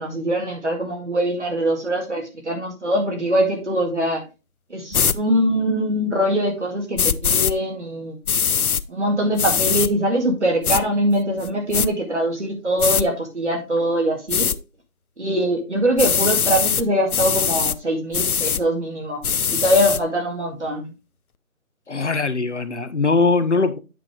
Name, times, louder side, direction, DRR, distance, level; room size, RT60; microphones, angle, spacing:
voice 1, 0.0-4.2 4.7-8.2 8.9-14.5 15.2-19.2 19.5-20.9, equal, 55° right, 2.2 m, -22 dB
sound 1, 4.9-5.2 7.0-7.5 8.3-8.8 9.4-9.9 10.6-10.8 11.4-11.9 12.8-13.0 14.3-14.6 16.0-16.8 17.1-17.8 18.1-18.6 19.2-20.0, left 7 dB, 80° left, 0.7 m, -21 dB
voice 2, 21.9-23.8, left 4 dB, 55° left, 1.0 m, -21 dB
9.0 x 5.7 x 3.4 m
figure-of-eight pair, 175°, 43 cm